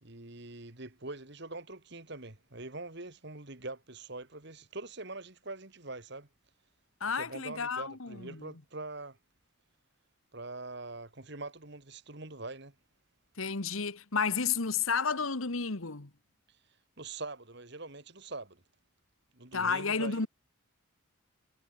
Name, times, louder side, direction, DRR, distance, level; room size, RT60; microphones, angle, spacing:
voice 1, 0.0-6.3 7.1-9.2 10.3-12.7 17.0-18.6 19.3-20.3, right 2 dB, 55° right, 2.4 m, -43 dB
voice 2, 7.0-8.5 13.4-16.1 19.5-20.3, left 5 dB, 75° left, 1.6 m, -32 dB
head